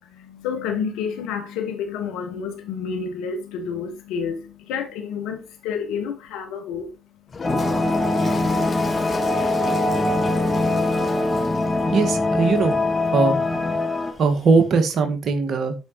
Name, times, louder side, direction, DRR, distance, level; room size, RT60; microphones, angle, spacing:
voice 1, 0.0-8.1, left 6 dB, 80° left, 1.4 m, -30 dB
Toilet flush, 7.3-14.8, left 4 dB, 40° left, 1.6 m, -37 dB
sound 1, 7.4-14.1, left 2 dB, 20° left, 2.5 m, -22 dB
voice 2, 11.9-12.7 13.1-13.4 14.2-15.7, right 4 dB, 60° right, 1.7 m, -19 dB
14.0 x 5.0 x 3.0 m
hypercardioid pair, 55°, 0 cm